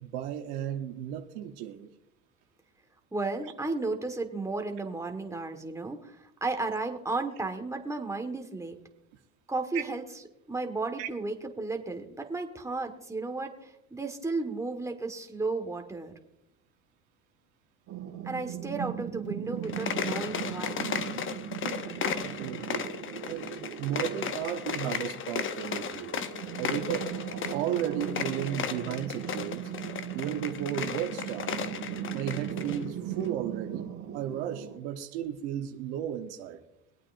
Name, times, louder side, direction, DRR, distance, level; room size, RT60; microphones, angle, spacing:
voice 1, 0.0-1.9 11.0-11.1 21.6-21.8 22.2-22.9 23.3-26.1 26.6-27.1 27.5-29.7 30.1-31.5 32.1-33.9 34.1-36.6, right 10 dB, 80° right, 1.2 m, -34 dB
voice 2, 3.1-8.8 9.5-10.0 10.5-16.1 18.2-20.8, right 3 dB, 10° right, 1.7 m, -34 dB
sound 1, 17.9-34.8, right 10 dB, 60° right, 2.1 m, -38 dB
sound 2, 19.6-32.8, left 7 dB, 35° left, 0.8 m, -35 dB
23.5 x 8.7 x 2.7 m
supercardioid pair, 85°, 34 cm